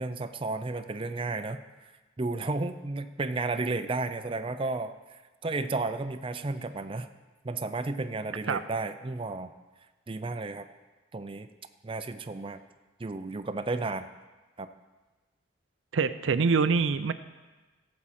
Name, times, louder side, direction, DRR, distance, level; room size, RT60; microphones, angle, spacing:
voice 1, 0.0-1.6 2.2-7.1 7.4-9.5 10.1-10.7 11.1-11.5 11.8-12.6 13.0-14.1 14.6-14.7, right 3 dB, 25° right, 9 dB, 0.5 m, -33 dB
voice 2, 15.9-17.1, right 5 dB, 75° right, 12 dB, 0.5 m, -25 dB
17.0 x 7.4 x 4.2 m, 1.2 s
head